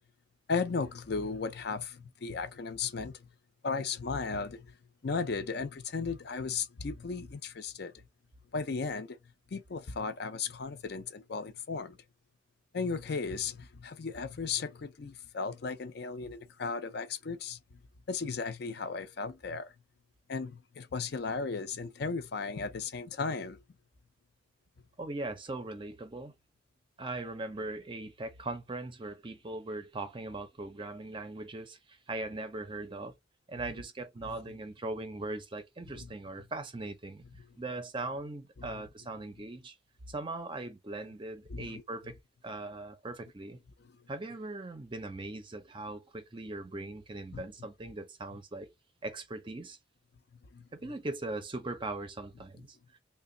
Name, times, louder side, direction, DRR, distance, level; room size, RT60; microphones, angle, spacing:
voice 1, 0.5-3.2 3.6-4.7 5.0-7.9 8.5-9.2 9.5-12.0 12.7-17.6 18.1-19.7 20.3-23.6 36.0-36.1 38.6-38.8 41.5-41.8 47.3-47.4 50.5-50.7, left 4 dB, 55° left, 0.5 m, -35 dB
voice 2, 25.0-26.3 27.0-33.1 33.5-37.2 37.6-39.8 40.1-42.2 42.4-43.6 44.1-48.7 49.0-49.8 50.7-53.0, right 2 dB, 25° right, 0.5 m, -40 dB
3.3 x 2.2 x 3.8 m
head